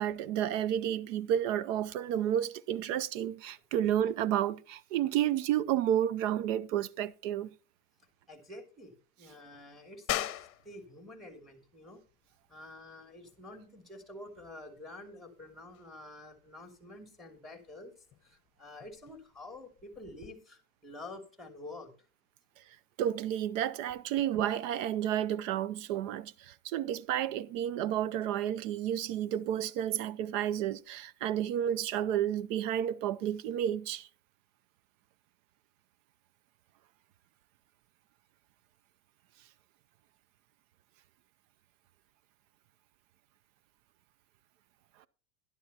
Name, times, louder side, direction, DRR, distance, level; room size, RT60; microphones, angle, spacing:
voice 1, 0.0-7.5 23.0-34.1, right 10 dB, 60° right, 0.7 m, -31 dB
voice 2, 8.3-12.0 12.5-21.9, left 2 dB, ahead, 2.7 m, -49 dB
sound 1, 10.1-20.3, left 13 dB, 30° left, 1.1 m, -44 dB
12.0 x 11.5 x 2.9 m
supercardioid pair, 115°, 45 cm